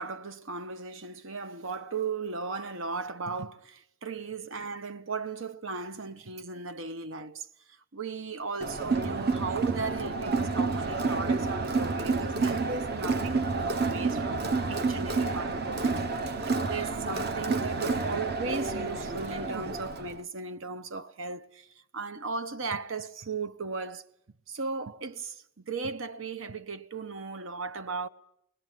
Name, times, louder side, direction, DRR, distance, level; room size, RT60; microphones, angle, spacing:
voice 1, 0.0-16.1 16.7-24.1 24.5-28.1, right 4 dB, 90° right, 1.0 m, -36 dB
Crowd, 8.6-20.2, right 3 dB, 55° right, 1.0 m, -29 dB
22.5 x 19.0 x 9.2 m
head